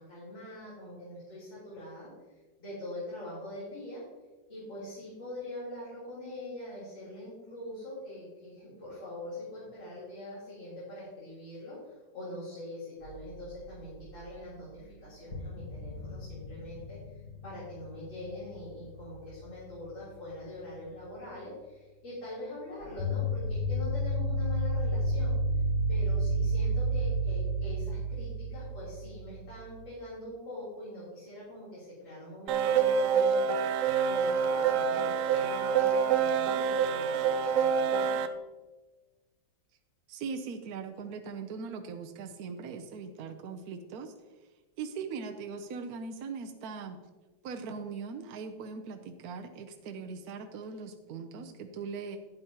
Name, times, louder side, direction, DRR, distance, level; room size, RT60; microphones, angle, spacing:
voice 1, 0.0-2.1 2.6-4.0 4.5-11.8 12.1-17.0 17.4-25.4 25.9-38.2, left 1 dB, 85° left, -11 dB, 4.2 m, -43 dB
sound 1, 13.0-14.5 14.8-14.9 15.3-19.7 22.8-29.9, right 1 dB, 60° left, 1.9 m, -32 dB
sound 2, 32.5-38.3, right 7 dB, 85° right, 0.7 m, -26 dB
voice 2, 40.1-44.1 44.8-47.0 47.4-52.2, right 5 dB, 65° right, 5 dB, 1.0 m, -40 dB
11.5 x 9.2 x 2.9 m, 1.2 s
omnidirectional pair, 2.1 m